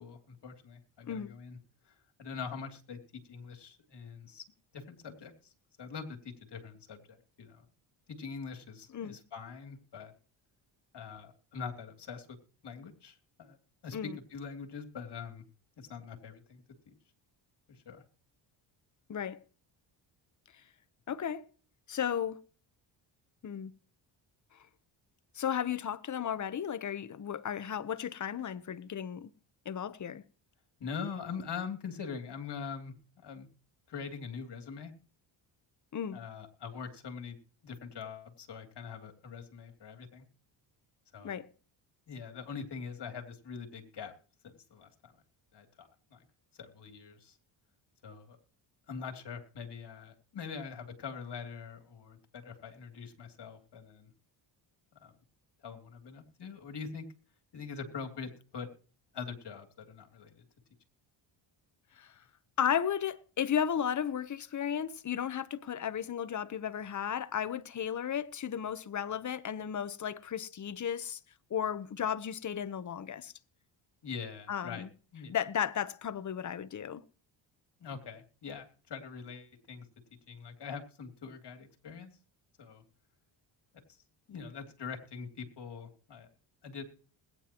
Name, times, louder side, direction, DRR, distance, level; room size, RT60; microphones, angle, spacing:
voice 1, 0.0-1.6 1.8-3.0 3.2-4.4 4.7-5.5 5.8-7.6 8.1-10.1 10.9-12.3 12.6-13.6 13.8-15.4 15.8-16.6 17.7-18.0 30.8-33.5 33.9-34.9 36.1-37.4 37.6-40.2 41.1-41.3 42.1-44.1 44.4-45.1 45.5-46.2 46.6-47.4 48.0-48.4 48.9-54.1 55.0-55.2 55.6-57.0 57.5-58.7 59.1-60.4 74.0-74.9 75.1-75.3 77.8-79.9 80.3-82.1 82.6-82.8 84.3-86.3 86.6-86.8, left 6 dB, 55° left, 2.9 m, -43 dB
voice 2, 19.1-19.4 21.1-21.5 21.9-22.4 23.4-23.7 25.3-29.3 29.6-30.2 35.9-36.2 41.2-41.5 62.0-62.1 62.6-71.2 71.5-73.3 74.5-74.9 75.3-77.0, left 8 dB, 35° left, 1.0 m, -34 dB
21.0 x 9.6 x 3.0 m
supercardioid pair, 70°, 50 cm